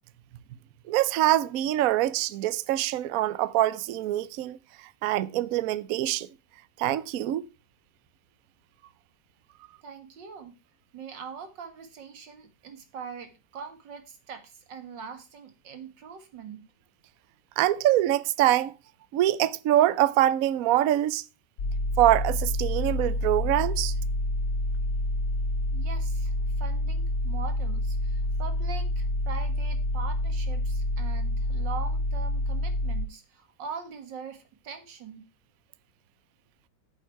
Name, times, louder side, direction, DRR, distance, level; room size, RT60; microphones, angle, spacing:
voice 1, 0.9-6.3 6.8-7.5 17.6-18.7 19.1-21.2 22.0-23.9, right 13 dB, 65° right, 0.9 m, -24 dB
voice 2, 9.8-10.6 10.9-16.6 25.7-35.3, right 6 dB, 85° right, 2.3 m, -42 dB
sound 1, 21.6-33.0, left 1 dB, 75° left, 2.3 m, -28 dB
9.1 x 7.2 x 4.5 m
omnidirectional pair, 1.9 m